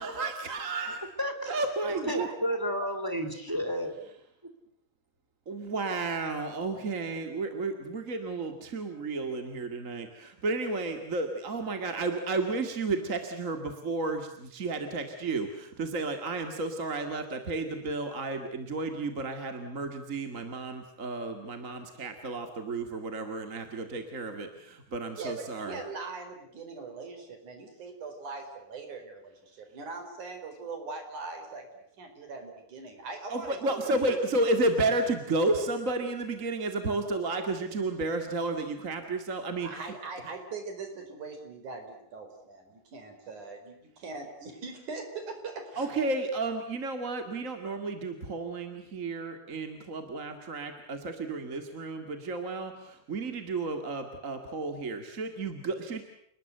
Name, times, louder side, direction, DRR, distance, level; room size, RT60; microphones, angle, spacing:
voice 1, 0.0-1.1 1.5-2.3 5.5-25.8 33.3-39.9 45.8-56.0, right 2 dB, 30° right, 6 dB, 1.9 m, -32 dB
voice 2, 1.2-1.5 2.0-3.9, equal, 5° right, 8 dB, 2.4 m, -31 dB
voice 3, 1.8-2.3 2.8-2.9 25.2-31.7 32.0-34.2 39.6-46.0, right 4 dB, 65° right, 5 dB, 6.1 m, -41 dB
29.5 x 20.5 x 7.9 m, 0.71 s
omnidirectional pair, 3.8 m